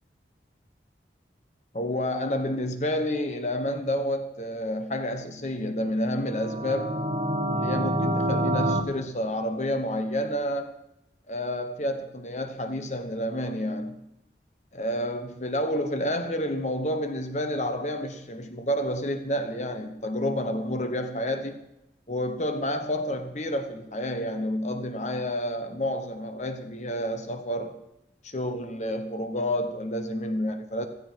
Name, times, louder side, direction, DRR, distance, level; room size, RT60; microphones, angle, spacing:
voice 1, 1.7-7.1 7.5-10.7 11.3-14.0 14.7-21.6 22.1-27.8 28.2-30.9, left 1 dB, 40° left, 1.1 m, -29 dB
sound 1, 6.2-8.8, right 1 dB, 35° right, 1.7 m, -27 dB
16.0 x 14.5 x 4.6 m
head